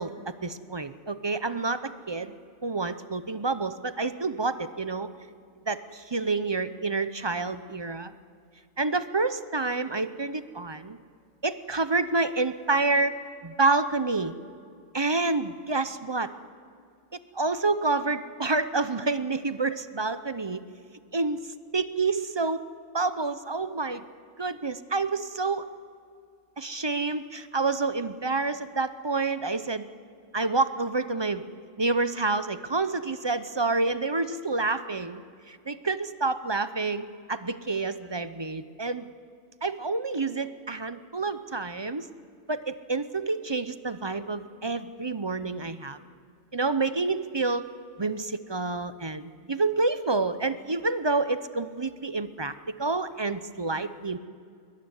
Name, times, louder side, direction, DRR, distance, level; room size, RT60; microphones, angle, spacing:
voice 1, 0.0-2.4 2.6-5.1 5.7-8.1 8.8-11.0 11.4-13.2 13.4-14.3 14.9-16.3 17.3-20.6 21.1-22.6 22.9-24.0 24.4-25.7 26.6-29.9 30.3-31.4 31.8-39.1 39.6-42.1 42.5-46.0 46.5-47.7 48.0-54.2, right 3 dB, 30° right, 12 dB, 0.6 m, -28 dB
21.0 x 21.0 x 9.6 m, 2.3 s
omnidirectional pair, 1.2 m